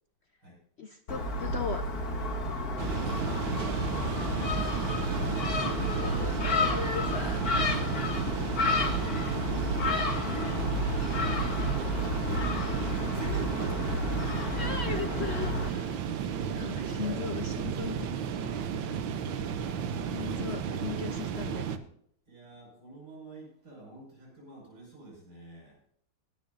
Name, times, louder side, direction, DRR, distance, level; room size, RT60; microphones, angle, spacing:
voice 1, 0.8-1.8 5.9-7.4 10.4-10.6 14.6-16.3 16.5-18.1 20.1-21.7, left 5 dB, 70° left, 7 dB, 0.6 m, -38 dB
Gull seagull, 1.1-15.7, left 2 dB, 50° left, 2.0 m, -31 dB
sound 1, 2.8-21.8, right 7 dB, 85° right, 1.7 m, -33 dB
voice 2, 13.1-13.6 16.4-18.9 22.3-25.8, right 2 dB, 55° right, -3 dB, 6.3 m, -47 dB
20.0 x 10.5 x 2.6 m, 0.66 s
omnidirectional pair, 2.1 m